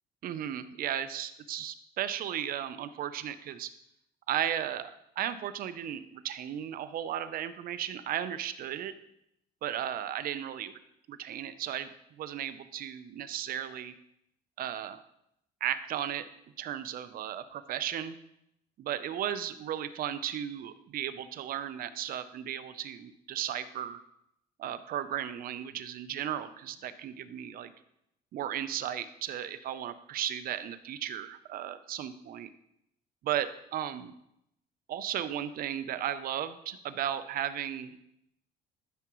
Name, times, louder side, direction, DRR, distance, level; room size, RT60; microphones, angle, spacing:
voice 1, 0.2-3.7 4.3-9.0 9.6-10.7 11.1-13.9 14.6-15.0 15.6-16.3 16.6-18.2 18.8-24.0 24.6-27.7 28.3-32.5 33.2-34.1 34.9-38.0, right 10 dB, 60° right, 12 dB, 0.6 m, -35 dB
12.5 x 6.0 x 3.0 m, 0.79 s
cardioid pair, 110°, 17 cm